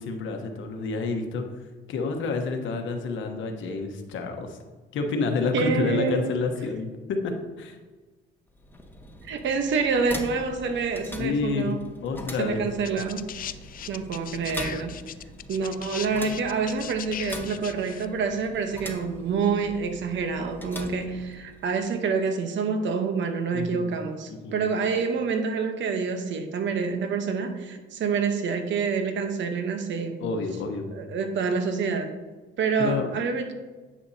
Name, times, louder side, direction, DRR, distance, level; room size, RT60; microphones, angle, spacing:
voice 1, 0.0-1.5 1.9-4.6 4.9-7.8 11.2-11.8 12.0-12.6 23.5-23.9 24.3-24.6 30.2-30.9 32.8-33.1, left 4 dB, 75° left, 4 dB, 1.1 m, -29 dB
voice 2, 5.5-6.3 9.2-11.8 12.4-13.2 13.9-14.9 15.5-30.2 30.9-32.1 32.6-33.5, right 5 dB, 70° right, 6 dB, 0.9 m, -27 dB
sound 1, 8.5-21.8, left 1 dB, 10° left, 1.1 m, -42 dB
sound 2, 12.8-18.1 19.1-19.2, left 10 dB, 45° left, 0.4 m, -38 dB
10.0 x 6.3 x 2.8 m, 1.3 s
cardioid pair, 90°, 20 cm